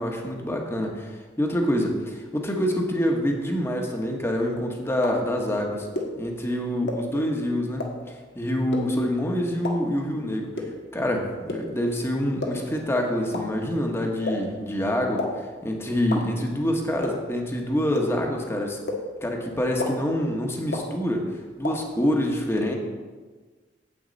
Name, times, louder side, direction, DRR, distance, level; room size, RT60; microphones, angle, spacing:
voice 1, 0.0-5.9 6.2-7.9 8.3-10.5 10.9-18.8 19.2-21.3 21.6-22.8, equal, 15° left, 1 dB, 1.2 m, -26 dB
sound 1, 5.0-5.1 5.9-6.0 6.9-7.0 7.8-7.9 8.7-8.8 9.6-9.7 10.6-10.7 11.5-11.6 12.4-12.5 13.3-13.4 14.3-14.4 15.2-15.3 16.1-16.2 17.0-17.1 17.9-18.0 18.9-19.0 19.8-19.9 20.7-20.8 21.6-21.7, left 2 dB, 75° left, 1.4 m, -28 dB
9.7 x 7.9 x 4.0 m, 1.4 s
head